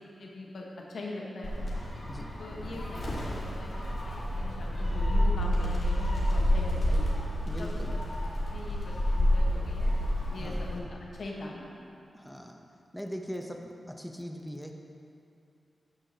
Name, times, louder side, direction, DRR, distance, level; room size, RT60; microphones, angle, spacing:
voice 1, 0.2-0.6 0.9-1.5 2.4-7.2 7.6-7.8 8.5-9.9 10.3-10.9 11.1-11.7, left 2 dB, 75° left, -2 dB, 1.3 m, -41 dB
Gull seagull, 1.4-10.8, equal, 55° left, 1.9 m, -29 dB
voice 2, 7.4-8.0 10.4-10.6 12.1-12.6 12.9-14.7, equal, 5° left, 2 dB, 0.8 m, -40 dB
12.0 x 6.4 x 2.9 m, 2.6 s
cardioid pair, 45°, 0 cm